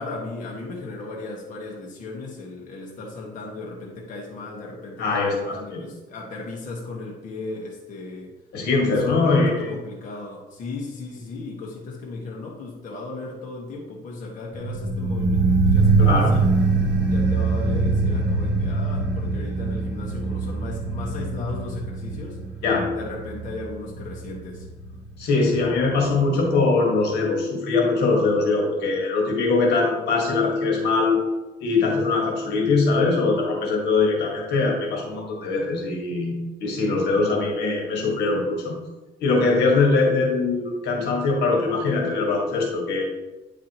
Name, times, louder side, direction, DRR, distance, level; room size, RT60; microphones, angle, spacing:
voice 1, 0.0-8.3 8.8-16.5 17.0-22.4 22.9-24.7, left 3 dB, 50° left, -2 dB, 1.4 m, -36 dB
voice 2, 5.0-5.8 8.5-9.7 16.0-16.4 22.6-22.9 25.2-31.2 31.6-38.8 39.2-43.0, left 3 dB, 80° left, -1 dB, 1.7 m, -22 dB
sound 1, 14.5-25.6 25.8-25.9, right 3 dB, 5° right, 0.8 m, -23 dB
9.1 x 4.9 x 3.0 m, 1.1 s
cardioid pair, 115°, 17 cm